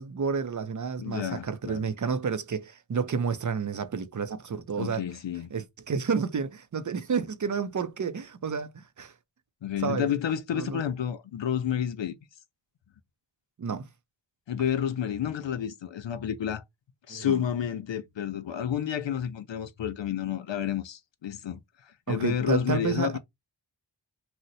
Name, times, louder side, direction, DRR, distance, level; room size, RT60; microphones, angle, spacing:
voice 1, 0.0-5.0 5.5-9.1 9.8-10.1 10.6-10.8 13.6-13.9 17.1-17.4 22.1-23.2, right 6 dB, 45° right, 0.5 m, -30 dB
voice 2, 1.0-1.9 4.8-5.6 9.6-12.2 14.5-16.6 17.1-21.6 22.1-23.2, left 9 dB, 75° left, 0.6 m, -30 dB
2.8 x 2.1 x 3.9 m
wide cardioid pair, 70°, 44 cm